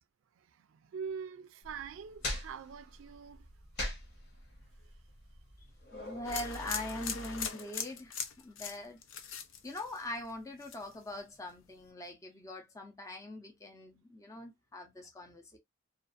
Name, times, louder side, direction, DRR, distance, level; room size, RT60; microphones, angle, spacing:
voice 1, 0.4-3.5 4.8-4.9, right 6 dB, 75° right, 0.3 m, -44 dB
sound 1, 1.6-6.7, left 1 dB, 55° left, 1.0 m, -42 dB
voice 2, 5.9-9.0 9.6-15.6, left 1 dB, 15° left, 0.5 m, -42 dB
sound 2, 6.2-10.3 10.6-11.1, left 6 dB, 75° left, 0.5 m, -40 dB
2.5 x 2.4 x 2.4 m
head